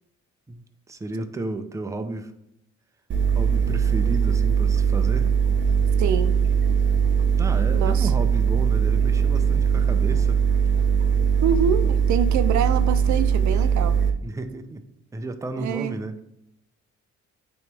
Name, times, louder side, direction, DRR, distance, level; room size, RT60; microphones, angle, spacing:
voice 1, 0.5-2.3 3.3-5.3 7.4-10.4 14.2-14.9 15.1-16.2, right 2 dB, 10° right, 0.5 m, -32 dB
sound 1, 3.1-14.1, right 7 dB, 40° right, 0.8 m, -20 dB
voice 2, 6.0-6.4 7.7-8.1 11.4-14.0 15.6-15.9, right 8 dB, 70° right, 0.5 m, -26 dB
9.1 x 3.1 x 3.4 m
cardioid pair, 90°, 30 cm